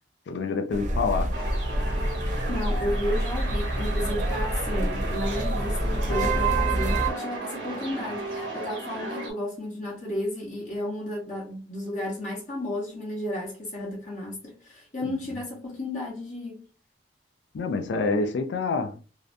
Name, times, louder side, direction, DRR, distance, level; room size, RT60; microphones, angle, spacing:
voice 1, 0.3-1.3 17.5-19.0, left 4 dB, 70° left, 0.3 m, -27 dB
sound 1, 0.7-7.1, right 1 dB, 45° right, 0.4 m, -27 dB
sound 2, 1.3-9.3, right 2 dB, 75° right, 1.0 m, -35 dB
voice 2, 2.5-16.6, left 1 dB, 45° left, 0.8 m, -33 dB
2.6 x 2.1 x 2.5 m
head